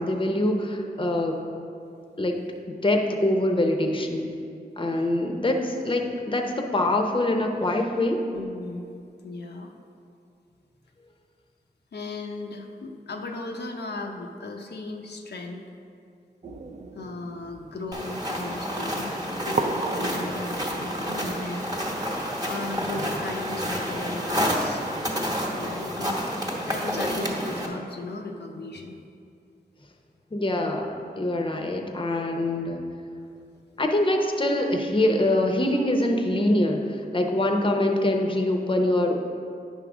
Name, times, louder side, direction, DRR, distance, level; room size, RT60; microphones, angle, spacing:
voice 1, 0.0-1.4 2.2-2.4 2.7-4.3 4.8-8.3 30.3-32.8 33.8-39.2, left 1 dB, 30° left, 3 dB, 0.7 m, -24 dB
voice 2, 8.3-8.9 9.2-9.7 11.9-15.6 16.9-21.7 22.5-26.2 26.7-29.0, left 2 dB, 90° left, 2 dB, 0.6 m, -36 dB
sound 1, 16.4-21.4, right 3 dB, 45° right, 0.4 m, -35 dB
sound 2, 17.9-27.7, equal, 25° right, 1.0 m, -29 dB
8.8 x 3.6 x 6.0 m, 2.5 s
wide cardioid pair, 85°, 17 cm